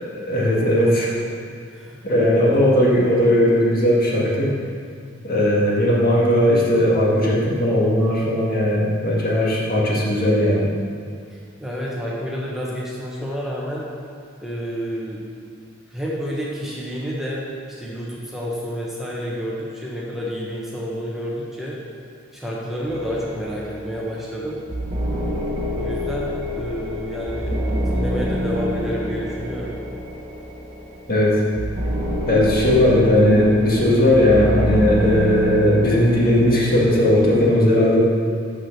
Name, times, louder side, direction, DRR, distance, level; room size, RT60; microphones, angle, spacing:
voice 1, 0.1-1.1 2.0-4.5 5.2-10.7 31.1-31.4 32.3-38.0, left 1 dB, 50° left, -5 dB, 2.0 m, -17 dB
voice 2, 1.7-2.3 11.3-13.8 14.4-15.2 15.9-17.4 17.7-21.8 22.3-24.6 25.7-27.5 27.8-29.7, equal, ahead, -5 dB, 1.1 m, -29 dB
sound 1, 22.9-37.5, equal, 35° right, 1.2 m, -27 dB
7.3 x 6.4 x 6.7 m, 2.2 s
head